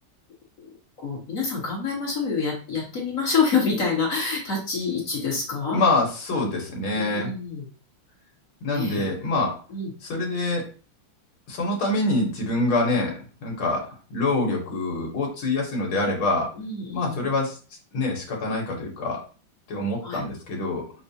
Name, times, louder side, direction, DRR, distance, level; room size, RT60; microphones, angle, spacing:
voice 1, 0.6-5.8 7.0-7.7 8.7-9.0 9.7-9.9 16.6-17.2 20.0-20.2, left 5 dB, 45° left, -3 dB, 1.5 m, -27 dB
voice 2, 5.7-7.3 8.6-9.6 10.0-10.7 11.5-13.1 13.4-16.5 16.9-17.6 17.9-19.2 19.7-20.9, left 2 dB, 75° left, -2 dB, 1.9 m, -25 dB
5.8 x 2.3 x 2.7 m, 0.36 s
omnidirectional pair, 2.3 m